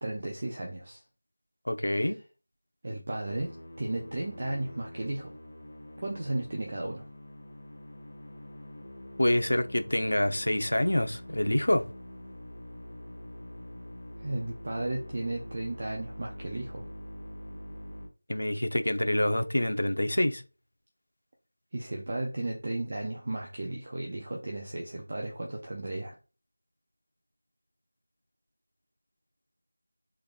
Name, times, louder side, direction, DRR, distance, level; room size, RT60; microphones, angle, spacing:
voice 1, 0.0-1.0 1.9-2.1 2.8-5.3 6.0-7.0 14.2-16.9 21.7-26.2, right 2 dB, 25° right, 0.5 m, -34 dB
voice 2, 1.7-2.2 9.2-11.9 18.3-20.4, left 1 dB, 80° left, 0.7 m, -26 dB
Musical instrument, 3.3-18.1, equal, 30° left, 1.4 m, -45 dB
3.7 x 3.4 x 2.4 m
figure-of-eight pair, 180°, 0 cm